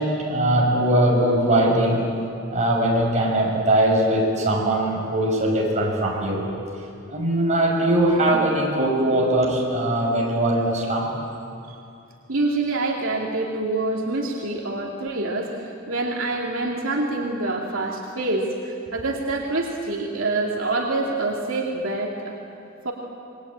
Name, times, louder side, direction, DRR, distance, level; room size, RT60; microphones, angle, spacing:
voice 1, 0.0-2.1 2.5-6.5 7.1-11.1, right 1 dB, 35° right, -2 dB, 6.7 m, -21 dB
voice 2, 12.3-22.4 22.8-22.9, right 2 dB, 80° right, -1 dB, 2.6 m, -26 dB
27.5 x 22.5 x 8.8 m, 2.6 s
head